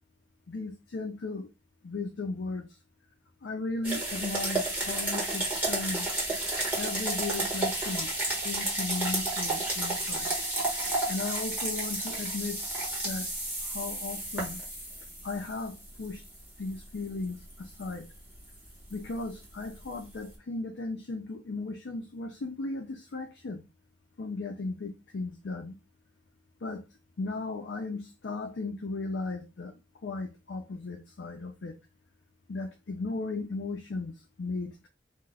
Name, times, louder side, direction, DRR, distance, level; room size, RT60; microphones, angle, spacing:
voice 1, 0.5-1.5 1.8-2.8 3.4-6.1 6.8-8.1 8.4-10.3 11.1-12.6 13.0-13.3 13.6-14.6 15.2-16.2 16.6-18.1 18.9-23.6 24.2-25.8 26.6-26.8 27.2-29.7 30.0-31.8 32.5-34.9, left 3 dB, 80° left, 0.5 m, -36 dB
sound 1, 3.8-20.3, right 2 dB, 10° right, 1.2 m, -32 dB
2.6 x 2.4 x 3.3 m
head